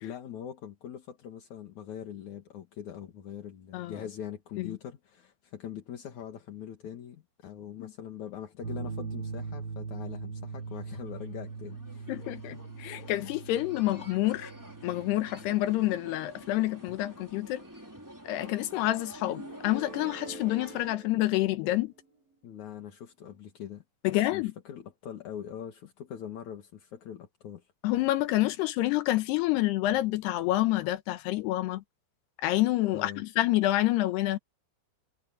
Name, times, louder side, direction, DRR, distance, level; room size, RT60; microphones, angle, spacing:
voice 1, 0.0-12.1 22.4-27.7 32.9-33.2, left 9 dB, 50° left, 2.6 m, -42 dB
sound 1, 8.6-15.9, right 4 dB, 85° right, 4.3 m, -41 dB
sound 2, 10.7-20.9, right 1 dB, 5° right, 3.6 m, -49 dB
voice 2, 12.1-14.5 14.8-17.6 18.3-21.9 24.0-24.5 27.8-31.8 32.4-34.4, left 16 dB, 75° left, 2.8 m, -28 dB
sound 3, 19.3-22.2, right 3 dB, 50° right, 7.3 m, -46 dB
omnidirectional pair, 5.3 m